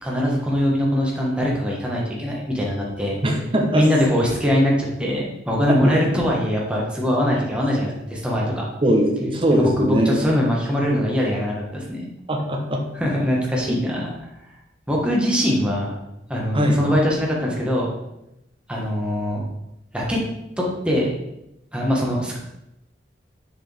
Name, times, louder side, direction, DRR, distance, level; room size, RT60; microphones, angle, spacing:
voice 1, 0.0-3.2 3.7-8.6 9.5-12.1 12.9-14.1 14.9-15.9 16.3-17.9 18.7-19.4 19.9-20.2 20.6-21.2 21.7-22.4, equal, 5° right, -3 dB, 1.3 m, -22 dB
voice 2, 3.2-3.8 5.7-5.9 8.8-10.1 12.3-12.8 13.7-13.8 16.5-16.8, right 1 dB, 30° right, 1 dB, 0.9 m, -20 dB
6.5 x 4.8 x 3.4 m, 0.87 s
head